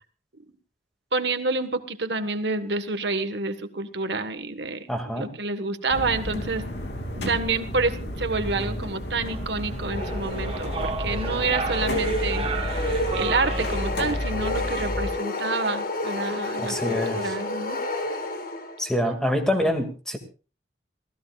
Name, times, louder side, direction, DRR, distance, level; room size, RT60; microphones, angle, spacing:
voice 1, 1.1-6.7 7.1-17.8, right 3 dB, 80° right, 9 dB, 1.5 m, -28 dB
voice 2, 4.9-5.3 16.6-17.3 18.8-20.2, equal, 5° left, 4 dB, 2.2 m, -26 dB
sound 1, 5.9-15.1, left 1 dB, 85° left, 2.8 m, -31 dB
sound 2, 9.3-14.3, right 4 dB, 35° right, 1.4 m, -34 dB
sound 3, 9.9-19.0, left 1 dB, 55° left, 1.9 m, -30 dB
27.0 x 16.0 x 2.5 m, 0.36 s
head